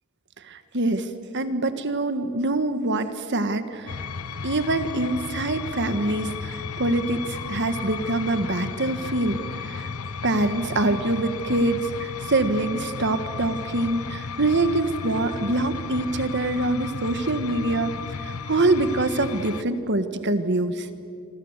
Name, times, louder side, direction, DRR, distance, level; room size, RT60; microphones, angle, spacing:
voice 1, 0.5-1.1 1.3-4.0 4.4-9.9 10.2-17.9 18.2-20.9, right 2 dB, 50° right, 10 dB, 1.6 m, -25 dB
sound 1, 3.9-19.6, left 5 dB, 75° left, 0.8 m, -34 dB
sound 2, 7.3-9.3 14.9-17.7, left 1 dB, 20° left, 7.4 m, -48 dB
26.5 x 26.0 x 8.2 m, 2.5 s
head